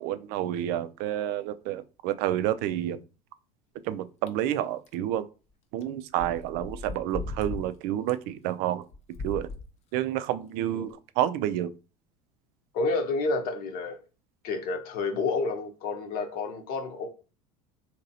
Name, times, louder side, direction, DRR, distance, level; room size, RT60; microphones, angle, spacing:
voice 1, 0.0-3.0 3.8-5.3 5.7-8.8 9.2-9.5 9.9-11.7, right 12 dB, 55° right, 0.4 m, -29 dB
sound 1, 4.3-4.4 4.9-5.0 5.8-5.9 6.2-7.7 8.1-8.2 8.9-9.7 10.2-10.3 10.9-11.0, left 3 dB, 35° left, 0.5 m, -37 dB
voice 2, 12.7-14.0 14.4-17.1, left 3 dB, 55° left, 0.9 m, -29 dB
2.9 x 2.8 x 2.7 m
hypercardioid pair, 75°, 18 cm